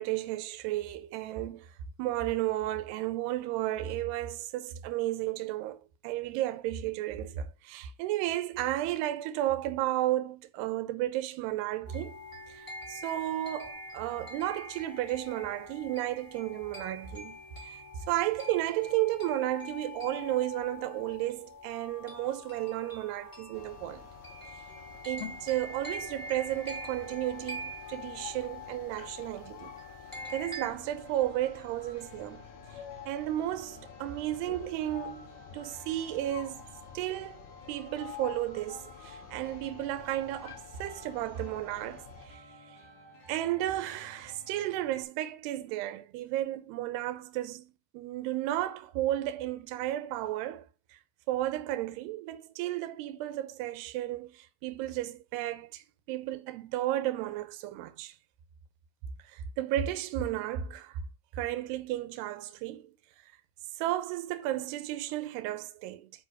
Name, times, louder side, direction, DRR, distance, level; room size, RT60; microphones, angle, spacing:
voice 1, 0.0-1.7 2.0-12.2 12.5-17.8 18.1-24.1 25.0-29.7 30.3-32.4 33.1-36.6 36.9-37.4 37.7-42.4 43.3-50.6 51.3-58.1 59.3-61.0 61.3-62.9 63.8-66.1, right 14 dB, 75° right, 2.6 m, -33 dB
sound 1, 11.8-30.7, left 1 dB, 25° left, 0.4 m, -44 dB
sound 2, 23.5-42.3, left 8 dB, 60° left, 3.3 m, -48 dB
sound 3, 30.0-45.0, left 1 dB, 40° left, 4.8 m, -54 dB
9.3 x 4.9 x 4.8 m
omnidirectional pair, 5.6 m